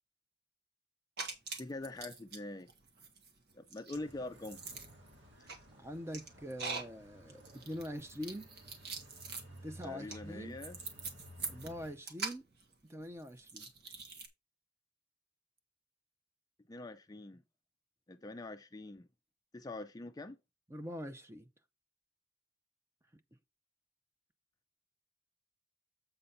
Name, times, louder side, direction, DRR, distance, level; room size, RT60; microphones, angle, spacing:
sound 1, 1.2-2.4 2.7-14.3, right 4 dB, 60° right, 1.7 m, -44 dB
voice 1, 1.6-2.7 3.5-4.6 9.8-10.8 16.7-17.4 18.1-19.1 19.5-20.4, left 2 dB, 20° left, 0.4 m, -44 dB
sound 2, 3.9-11.9, equal, 75° right, 2.5 m, -56 dB
voice 2, 5.4-8.5 9.6-10.6 11.5-12.5 12.9-13.7 20.7-21.5, equal, 15° right, 0.7 m, -44 dB
7.9 x 4.0 x 5.5 m
head